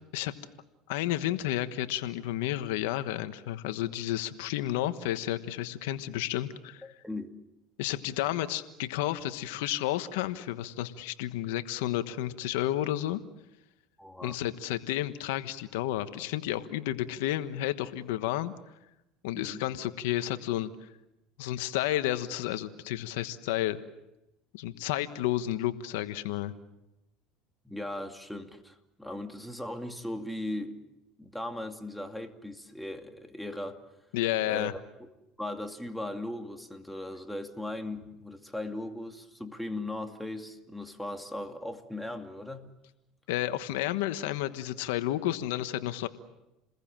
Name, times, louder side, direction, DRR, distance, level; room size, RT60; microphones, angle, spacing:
voice 1, 0.9-6.9 7.8-13.2 14.2-18.5 19.2-20.9 21.4-23.8 24.5-26.5 34.1-34.7 43.3-46.1, left 14 dB, 85° left, 11 dB, 1.3 m, -31 dB
voice 2, 6.8-7.3 14.0-14.4 19.3-19.6 27.6-30.8 31.2-33.8 34.5-34.8 35.4-42.7, left 1 dB, ahead, 5 dB, 2.5 m, -38 dB
29.5 x 21.0 x 7.5 m, 0.93 s
supercardioid pair, 100°, 0 cm